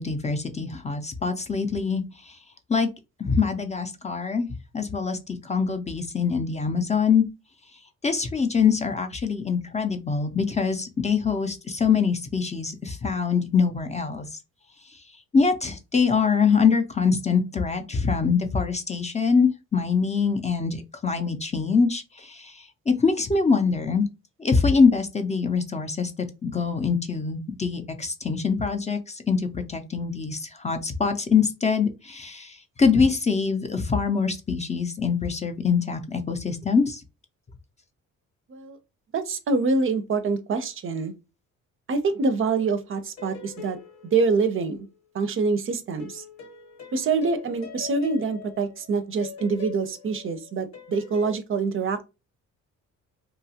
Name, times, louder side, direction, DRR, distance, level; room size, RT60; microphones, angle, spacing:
voice 1, 0.0-2.4 2.7-2.9 3.2-4.5 4.7-7.2 8.0-14.3 15.3-24.0 24.4-26.1 26.4-37.0, left 5 dB, 25° left, 0.5 m, -24 dB
voice 2, 39.1-41.1 41.9-43.8 44.1-44.9 45.1-46.2 46.9-52.0, right 4 dB, 45° right, 0.5 m, -25 dB
sound 1, 42.2-45.1 46.0-51.4, left 7 dB, 65° left, 0.9 m, -43 dB
2.9 x 2.3 x 2.7 m
cardioid pair, 90°, 30 cm